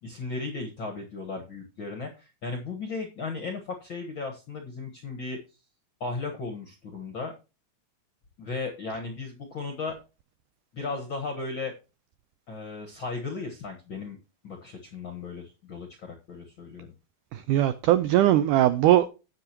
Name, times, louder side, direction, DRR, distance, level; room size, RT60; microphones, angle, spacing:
voice 1, 0.0-5.4 6.0-7.3 8.4-9.9 10.7-11.7 12.5-14.2 14.4-16.9, left 3 dB, 60° left, 1.3 m, -35 dB
voice 2, 17.3-19.1, right 13 dB, 85° right, 1.8 m, -20 dB
17.0 x 6.1 x 2.9 m
omnidirectional pair, 4.3 m